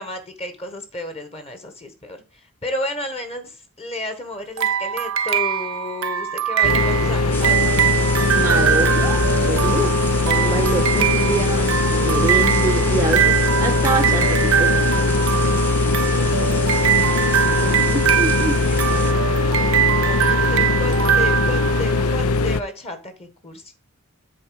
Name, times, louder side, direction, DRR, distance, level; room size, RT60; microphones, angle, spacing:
voice 1, 0.0-7.8 15.8-19.4 20.0-23.7, left 2 dB, 30° left, 1.3 m, -33 dB
sound 1, 4.6-22.2, right 9 dB, 65° right, 0.5 m, -22 dB
sound 2, 6.6-22.6, left 3 dB, 90° left, 0.5 m, -20 dB
sound 3, 7.3-19.1, left 1 dB, 10° left, 0.8 m, -32 dB
voice 2, 8.3-14.9 17.6-18.6, right 2 dB, 15° right, 0.4 m, -26 dB
7.7 x 4.3 x 4.7 m
head